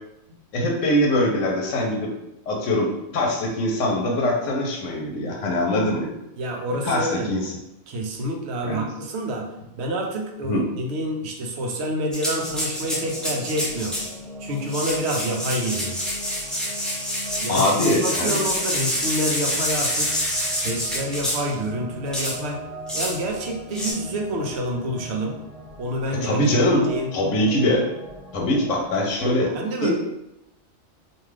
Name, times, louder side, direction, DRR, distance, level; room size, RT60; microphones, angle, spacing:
voice 1, 0.5-2.1 2.5-2.9 3.1-6.1 6.8-7.4 8.6-8.8 10.4-10.6 17.5-18.4 26.2-26.9 27.1-27.8 28.3-29.5 29.8-29.9, left 1 dB, 80° left, 0 dB, 1.0 m, -22 dB
voice 2, 6.4-7.3 7.9-14.0 14.4-16.0 17.4-17.7 18.0-20.2 20.5-22.6 22.9-25.4 25.8-26.4 26.7-27.1 29.5-29.9, right 1 dB, 65° right, 1 dB, 0.8 m, -28 dB
sound 1, 12.1-14.1 14.6-21.5 22.1-22.4 22.9-23.2 23.7-23.9, equal, ahead, 0.4 m, -27 dB
sound 2, 12.3-29.1, equal, 40° right, 1.1 m, -40 dB
2.5 x 2.3 x 3.2 m, 0.87 s
omnidirectional pair, 1.3 m